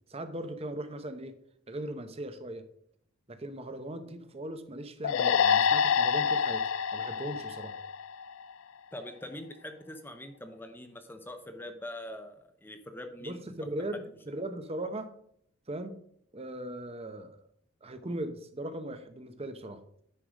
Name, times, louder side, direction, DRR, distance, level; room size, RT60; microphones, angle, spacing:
voice 1, 0.1-1.3 1.7-2.6 3.3-6.6 6.9-7.7 13.2-15.1 15.7-16.0 16.3-17.4 17.8-19.8, right 1 dB, 30° right, 9 dB, 0.8 m, -38 dB
sound 1, 5.0-8.5, left 7 dB, 65° left, 0.4 m, -27 dB
voice 2, 8.9-13.5, left 1 dB, 10° left, 7 dB, 0.7 m, -43 dB
9.9 x 4.9 x 5.0 m, 0.68 s
head